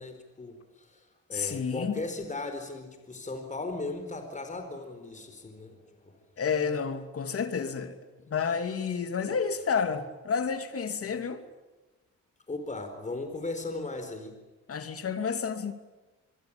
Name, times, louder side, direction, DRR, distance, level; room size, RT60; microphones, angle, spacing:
voice 1, 0.0-6.2 12.5-14.4, left 2 dB, 25° left, 4.7 m, -37 dB
voice 2, 1.3-2.0 6.4-8.0 8.3-11.4 14.7-15.7, left 6 dB, 50° left, 2.8 m, -30 dB
27.0 x 22.0 x 9.0 m
cardioid pair, 90°, 30 cm